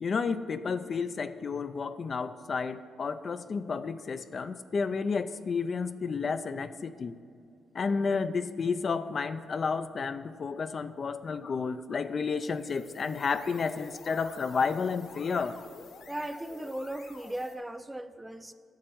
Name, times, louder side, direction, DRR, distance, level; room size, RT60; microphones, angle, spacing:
voice 1, 0.0-7.2 7.7-15.5, left 5 dB, 45° left, 11 dB, 0.4 m, -31 dB
sound 1, 12.3-17.6, left 5 dB, 80° left, 1.2 m, -50 dB
voice 2, 16.1-18.5, right 1 dB, 10° right, 10 dB, 0.5 m, -37 dB
8.4 x 6.4 x 7.8 m, 2.5 s
cardioid pair, 110°, 0 cm